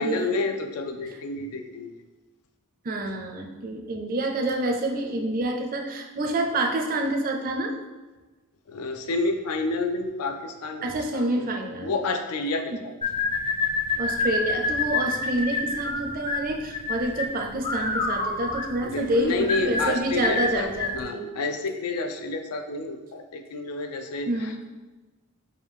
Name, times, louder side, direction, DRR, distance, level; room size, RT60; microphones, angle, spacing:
voice 1, 0.0-1.9 8.7-11.5 11.8-12.9 18.8-24.7, left 3 dB, 85° left, 6 dB, 0.4 m, -29 dB
voice 2, 2.8-7.7 10.8-11.9 14.0-21.2 24.3-24.6, right 1 dB, 40° right, 3 dB, 0.4 m, -27 dB
sound 1, 13.0-21.0, left 3 dB, 25° left, 0.4 m, -28 dB
4.9 x 2.2 x 3.4 m, 1.2 s
head